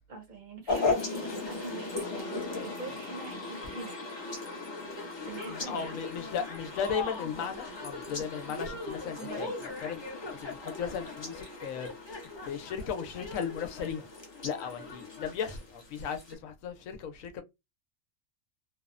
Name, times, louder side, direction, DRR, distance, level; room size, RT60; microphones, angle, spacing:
voice 1, 0.1-4.0 5.3-5.9 9.2-9.6, right 3 dB, 45° right, 0.7 m, -43 dB
sound 1, 0.7-16.3, left 3 dB, 35° left, 0.4 m, -37 dB
voice 2, 5.5-14.1 14.4-17.4, left 7 dB, 80° left, 1.0 m, -36 dB
2.8 x 2.0 x 2.4 m
omnidirectional pair, 1.4 m